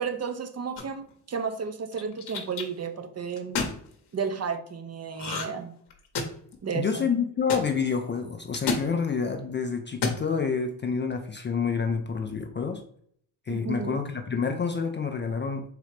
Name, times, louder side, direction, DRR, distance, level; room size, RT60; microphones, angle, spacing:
voice 1, 0.0-3.6 4.1-5.7 6.6-7.1 13.5-14.0, right 6 dB, 35° right, 8 dB, 0.6 m, -32 dB
sound 1, 0.8-1.1 1.9-2.6 3.4-3.8 5.2-5.6 5.9-6.5 7.5-7.6 8.5-8.9 9.9-10.2, left 4 dB, 55° left, 0.9 m, -29 dB
voice 2, 6.7-12.8 13.5-15.6, left 5 dB, 25° left, 4 dB, 0.4 m, -28 dB
3.8 x 3.1 x 3.2 m, 0.63 s
supercardioid pair, 55°, 47 cm